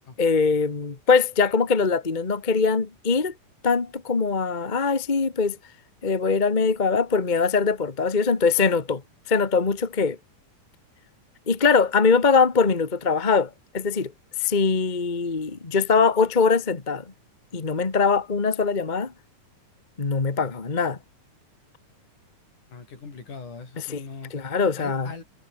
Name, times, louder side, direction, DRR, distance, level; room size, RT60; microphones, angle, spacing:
voice 1, 0.2-3.3 3.6-5.6 6.0-9.0 9.3-10.2 11.5-14.1 14.4-17.0 17.5-19.1 20.0-21.0 23.9-24.0 24.3-25.1, left 5 dB, 30° left, 0.8 m, -22 dB
voice 2, 22.7-24.3 24.8-25.2, left 4 dB, 65° left, 7.2 m, -40 dB
omnidirectional pair, 3.8 m